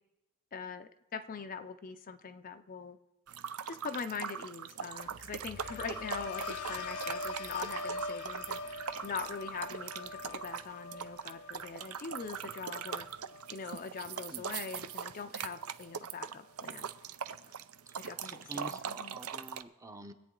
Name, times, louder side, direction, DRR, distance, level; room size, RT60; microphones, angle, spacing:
voice 1, 0.5-3.0 3.7-8.6 9.0-13.1 13.5-16.9 17.4-17.5 18.0-19.2, left 5 dB, 40° left, 9 dB, 0.5 m, -42 dB
sound 1, 3.3-19.6, right 8 dB, 70° right, 0.5 m, -41 dB
sound 2, 5.1-15.1 15.5-15.9, left 3 dB, 80° left, 0.8 m, -44 dB
voice 2, 17.9-20.1, right 2 dB, 15° right, 7 dB, 0.7 m, -48 dB
23.0 x 8.7 x 3.8 m, 0.99 s
head